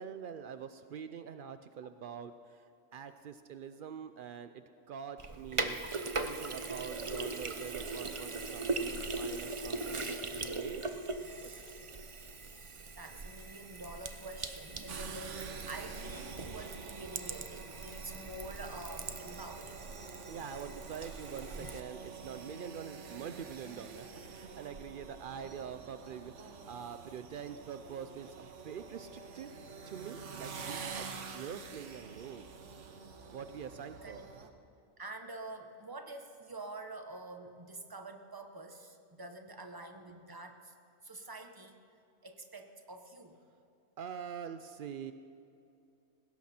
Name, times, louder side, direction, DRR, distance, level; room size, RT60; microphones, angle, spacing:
voice 1, 0.0-5.8 6.2-10.8 11.4-11.5 20.3-29.5 29.9-32.5 33.3-34.2 44.0-45.1, right 7 dB, 80° right, 10 dB, 0.4 m, -45 dB
Sink (filling or washing), 5.2-21.8, right 3 dB, 35° right, 0.5 m, -40 dB
voice 2, 13.0-19.8 34.0-34.3 35.0-40.7 41.0-41.8 42.2-43.4, right 2 dB, 20° right, 5 dB, 0.9 m, -47 dB
sound 1, 14.9-34.5, right 5 dB, 60° right, 1.3 m, -47 dB
19.5 x 16.5 x 4.3 m, 2.7 s
omnidirectional pair, 1.5 m